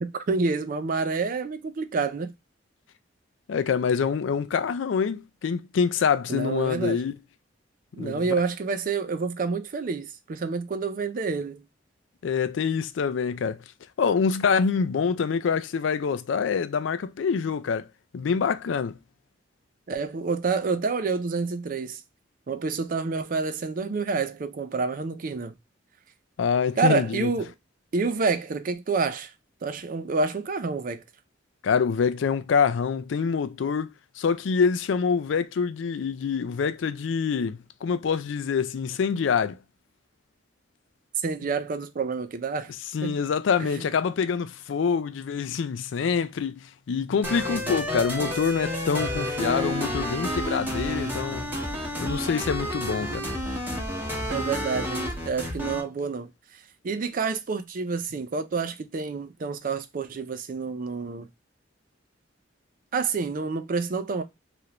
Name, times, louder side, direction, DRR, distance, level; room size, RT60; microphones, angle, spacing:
voice 1, 0.0-2.3 6.3-7.0 7.9-11.7 19.9-22.0 22.5-25.5 26.8-27.5 27.9-29.3 29.6-31.0 41.2-42.7 43.0-43.2 43.8-43.9 52.9-53.4 54.3-61.3 62.9-64.2, right 4 dB, 45° right, 0.4 m, -28 dB
voice 2, 3.5-7.2 8.0-8.2 12.2-13.6 14.0-17.9 18.1-19.0 26.4-27.3 31.6-33.9 34.2-39.6 42.9-51.5 52.0-53.3, left 6 dB, 75° left, 0.4 m, -26 dB
sound 1, 47.2-55.8, equal, 10° right, 0.8 m, -30 dB
3.3 x 2.5 x 2.8 m
head